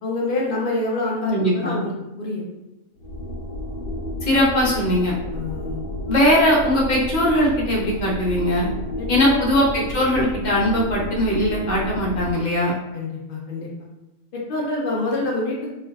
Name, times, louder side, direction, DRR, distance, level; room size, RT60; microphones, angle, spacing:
voice 1, 0.0-1.9 2.2-2.4 5.3-5.8 9.0-9.6 12.9-13.7 14.3-15.7, left 2 dB, 90° left, -2 dB, 0.4 m, -26 dB
voice 2, 1.3-1.8 4.2-5.1 6.1-8.7 9.1-12.7, equal, 45° left, -4 dB, 0.6 m, -20 dB
sound 1, 3.0-12.3, left 1 dB, 70° left, 1.0 m, -31 dB
3.4 x 2.3 x 2.2 m, 0.98 s
omnidirectional pair, 1.5 m